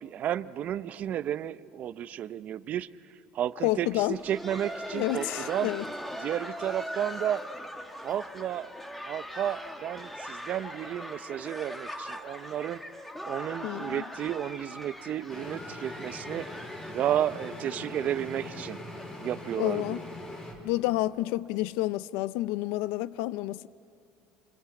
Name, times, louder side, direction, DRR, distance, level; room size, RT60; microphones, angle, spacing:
voice 1, 0.0-2.9 3.3-5.7 6.2-7.4 8.0-8.7 9.1-12.8 13.2-16.5 16.9-18.8 19.2-20.0, right 11 dB, 45° right, 0.6 m, -32 dB
voice 2, 3.6-4.2 4.9-5.9 13.6-14.0 19.6-20.0 20.6-23.7, left 17 dB, 85° left, 0.5 m, -29 dB
Laughter, 4.0-19.6 19.8-19.9 20.5-20.6 21.2-21.4 22.4-22.5, equal, 5° left, 1.5 m, -41 dB
sound 1, 15.3-20.5, left 1 dB, 20° left, 3.9 m, -41 dB
26.0 x 20.5 x 9.1 m
cardioid pair, 135°, 3 cm